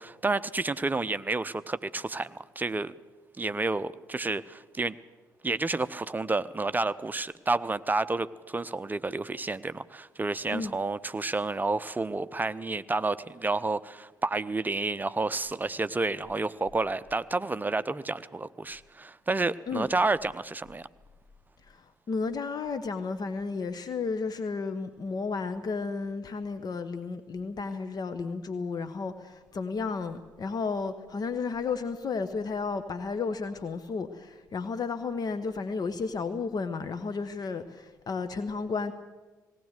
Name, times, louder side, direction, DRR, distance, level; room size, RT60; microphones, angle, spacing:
voice 1, 0.0-2.9 3.4-5.0 5.4-20.9, right 3 dB, 20° right, 0.8 m, -30 dB
voice 2, 21.7-38.9, left 4 dB, 40° left, 1.1 m, -33 dB
18.5 x 18.0 x 8.1 m
figure-of-eight pair, 45°, 10 cm